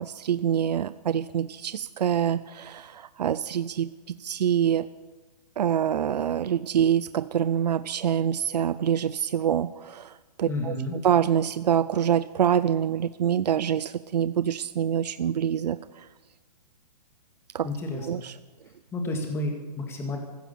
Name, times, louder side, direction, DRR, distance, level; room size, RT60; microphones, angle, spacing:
voice 1, 0.0-3.9 4.2-4.9 5.6-10.7 11.0-16.1 17.5-17.7 18.1-18.3, right 9 dB, 80° right, 16 dB, 0.6 m, -25 dB
voice 2, 10.5-11.0 17.6-18.2 18.9-20.2, left 1 dB, 10° left, 3 dB, 2.1 m, -31 dB
15.5 x 12.5 x 6.9 m, 1.3 s
hypercardioid pair, 155°, 21 cm